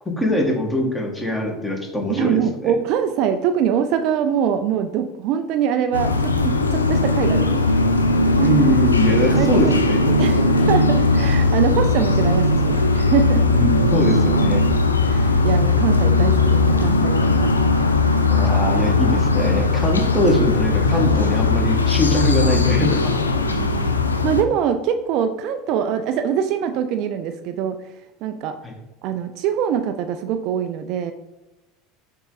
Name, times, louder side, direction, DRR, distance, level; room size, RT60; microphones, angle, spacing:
voice 1, 0.2-2.7 8.4-10.6 13.5-14.6 18.3-23.2 28.6-28.7, left 1 dB, 10° left, 1 dB, 1.7 m, -22 dB
voice 2, 2.1-7.7 8.4-8.6 9.4-9.7 10.2-10.4 10.7-13.4 15.1-17.5 23.5-27.8 28.2-28.6 29.0-31.1, right 8 dB, 50° right, 8 dB, 0.4 m, -23 dB
sound 1, 5.9-24.4, left 2 dB, 85° left, 0.5 m, -18 dB
6.8 x 3.6 x 4.0 m, 1.0 s
figure-of-eight pair, 75°, 0 cm